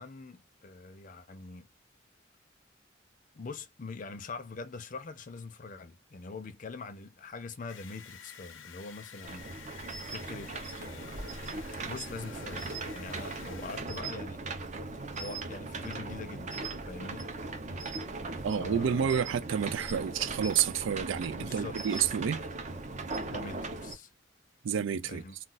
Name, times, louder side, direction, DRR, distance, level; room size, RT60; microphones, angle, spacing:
voice 1, 0.0-1.7 3.3-11.2 11.8-14.4 15.1-16.6 16.9-17.3 18.4-19.2 21.3-22.0 23.2-24.1 25.1-25.3, left 3 dB, 40° left, 0.5 m, -44 dB
sound 1, 7.7-13.8, left 7 dB, 90° left, 0.6 m, -50 dB
sound 2, 9.2-24.0, right 3 dB, 40° right, 0.6 m, -39 dB
voice 2, 18.4-22.5 24.6-25.2, right 8 dB, 80° right, 0.4 m, -29 dB
2.4 x 2.3 x 3.8 m
head